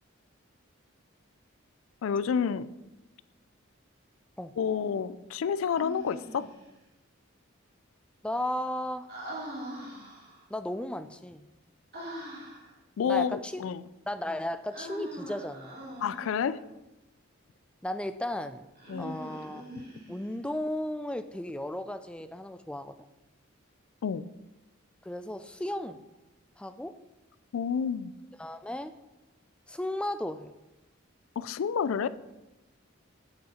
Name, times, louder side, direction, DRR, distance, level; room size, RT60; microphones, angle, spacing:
voice 1, 2.0-2.7 4.6-6.5 13.0-13.8 16.0-16.6 18.9-19.2 24.0-24.3 27.5-28.1 31.4-32.1, left 7 dB, 80° left, 16 dB, 0.4 m, -29 dB
Human voice, 5.7-6.6 9.1-10.4 11.9-12.7 14.7-16.5 18.8-20.4, right 1 dB, 50° right, 2.8 m, -42 dB
voice 2, 8.2-9.1 10.5-11.4 13.1-13.6 14.1-15.7 17.8-18.6 19.0-19.6 20.1-22.9 25.0-26.0 26.6-26.9 28.4-28.9 29.7-30.5, left 1 dB, 5° left, 10 dB, 0.3 m, -34 dB
8.2 x 6.4 x 4.2 m, 1.0 s
head